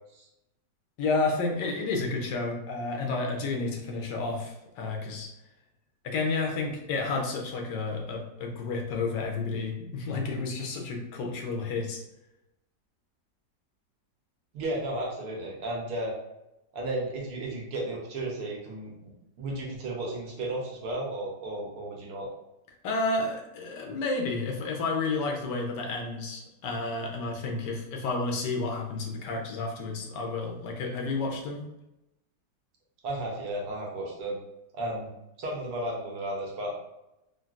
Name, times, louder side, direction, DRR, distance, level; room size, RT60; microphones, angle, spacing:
voice 1, 1.0-5.3 6.0-12.0 22.8-31.6, left 3 dB, 80° left, 1 dB, 1.2 m, -31 dB
voice 2, 14.5-16.1 16.7-18.9 19.4-22.3 33.0-34.4 34.7-35.1 35.4-36.8, right 1 dB, 70° right, -2 dB, 1.2 m, -33 dB
3.8 x 2.2 x 2.3 m, 0.89 s
omnidirectional pair, 1.8 m